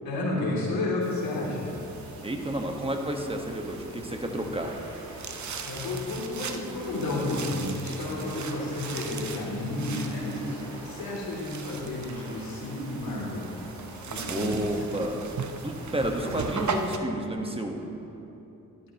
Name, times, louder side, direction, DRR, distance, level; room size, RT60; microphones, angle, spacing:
voice 1, 0.0-1.7 5.6-10.4 10.8-13.5 14.1-14.8 16.2-16.3, left 2 dB, 75° left, -5 dB, 2.9 m, -31 dB
sound 1, 1.0-17.0, right 5 dB, 55° right, 0.8 m, -40 dB
sound 2, 1.6-16.9, right 1 dB, 90° right, 1.9 m, -45 dB
voice 2, 2.2-4.8 14.3-15.2 15.6-17.9, right 1 dB, 15° right, 3 dB, 1.4 m, -30 dB
13.5 x 12.0 x 3.0 m, 2.9 s
cardioid pair, 60°, 36 cm